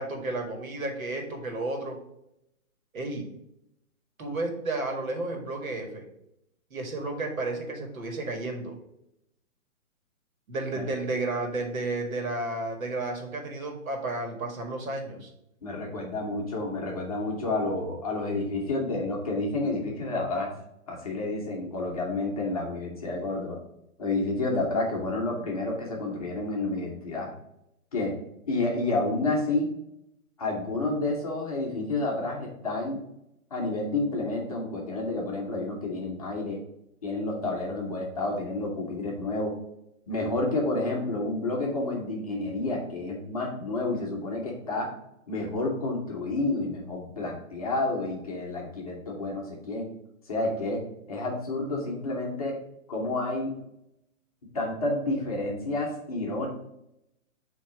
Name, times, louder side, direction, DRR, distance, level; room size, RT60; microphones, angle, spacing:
voice 1, 0.0-2.0 2.9-3.3 4.2-6.0 6.7-8.7 10.5-15.3, right 2 dB, 75° right, 3 dB, 1.7 m, -32 dB
voice 2, 15.6-20.5 20.9-23.6 24.0-27.3 27.9-28.1 28.5-29.7 30.4-33.0 33.5-36.6 37.0-39.5 40.1-44.9 45.3-49.9 50.3-50.8 51.1-52.6 52.9-53.5 54.5-56.5, left 2 dB, 25° left, -1 dB, 0.8 m, -30 dB
6.3 x 3.0 x 4.9 m, 0.82 s
hypercardioid pair, 170°, 42 cm